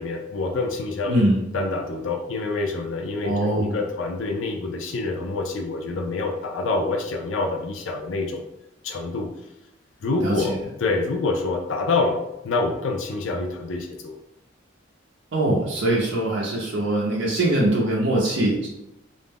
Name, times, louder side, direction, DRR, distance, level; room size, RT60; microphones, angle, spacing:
voice 1, 0.0-1.2 1.5-8.5 8.8-9.3 10.0-12.2 12.4-14.1, left 3 dB, 85° left, 3 dB, 0.4 m, -26 dB
voice 2, 1.1-1.4 3.2-3.8 10.2-10.6 15.3-18.7, right 1 dB, 70° right, -4 dB, 0.6 m, -22 dB
2.5 x 2.1 x 3.4 m, 0.88 s
head